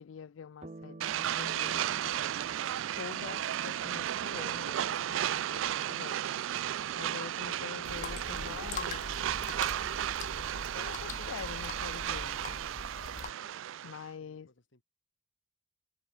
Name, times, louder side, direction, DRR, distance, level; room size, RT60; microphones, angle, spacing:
voice 1, 0.0-2.3 3.0-6.5 7.0-9.0 10.8-12.6 13.8-14.5, left 7 dB, 85° left, 0.4 m, -46 dB
sound 1, 0.6-9.5, right 2 dB, 35° right, 0.8 m, -54 dB
sound 2, 1.0-14.1, right 11 dB, 85° right, 0.3 m, -34 dB
voice 2, 6.6-8.6 12.9-14.8, left 2 dB, 70° left, 3.1 m, -63 dB
sound 3, 7.8-13.3, left 4 dB, 40° left, 0.7 m, -42 dB
head